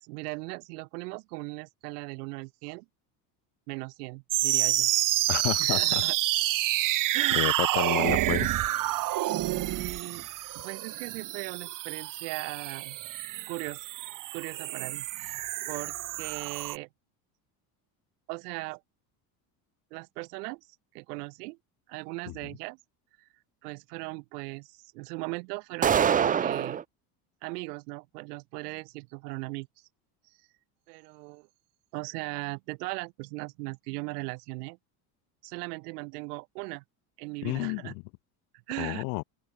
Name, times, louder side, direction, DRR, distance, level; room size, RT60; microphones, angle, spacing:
voice 1, 0.0-2.9 3.7-4.9 5.6-6.2 7.1-7.5 9.4-10.3 10.5-13.0 13.5-13.9 14.3-16.9 18.3-18.8 19.9-20.6 20.9-21.6 21.9-22.8 23.2-23.3 23.6-26.8 27.4-29.7 30.9-31.5 31.9-34.8 35.4-36.8 37.2-37.9 38.7-39.0, right 27 dB, 85° right, 2.8 m, -38 dB
sound 1, 4.3-16.8, right 15 dB, 45° right, 0.9 m, -29 dB
voice 2, 5.3-6.0 7.3-8.5 22.3-22.4 37.4-38.0 38.8-39.2, left 37 dB, 75° left, 2.1 m, -31 dB
sound 2, 25.8-26.8, right 8 dB, 20° right, 0.4 m, -24 dB
supercardioid pair, 110°, 45 cm